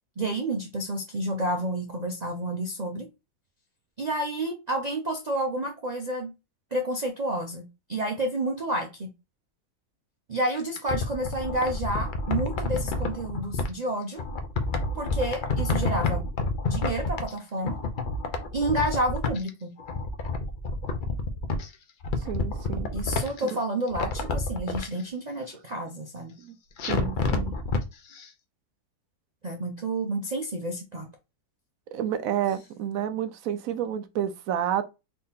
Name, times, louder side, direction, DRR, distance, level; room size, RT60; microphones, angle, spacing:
voice 1, 0.2-3.1 4.0-6.3 6.7-9.1 10.3-14.2 15.0-16.3 16.6-17.8 18.5-19.8 22.9-26.4 29.4-31.1, right 1 dB, 45° right, 0.5 m, -30 dB
sound 1, 10.5-13.7 14.2-17.4 17.6-19.5 19.8-21.7 22.0-23.5 23.9-24.9 26.8-27.8 28.2-28.3, left 3 dB, 50° left, 0.6 m, -29 dB
voice 2, 22.2-22.9 26.4-26.6 26.9-27.6 31.9-34.8, right 10 dB, 70° right, 0.9 m, -30 dB
4.2 x 2.8 x 3.6 m
omnidirectional pair, 1.6 m